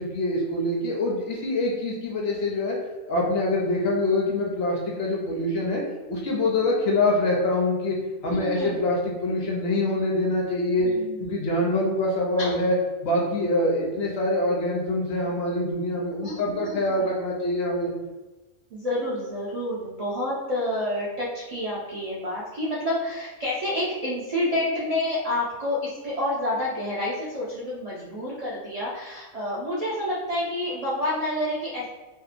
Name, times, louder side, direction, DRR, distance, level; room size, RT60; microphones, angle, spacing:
voice 1, 0.0-2.8 3.1-5.8 6.1-8.0 8.2-10.9 11.2-12.7 13.0-17.9, left 1 dB, 60° left, -2 dB, 0.7 m, -25 dB
voice 2, 8.3-8.7 10.8-11.2 12.4-12.6 16.2-17.0 18.7-31.9, left 1 dB, 75° right, -7 dB, 0.3 m, -29 dB
2.7 x 2.1 x 2.4 m, 1.2 s
omnidirectional pair, 1.3 m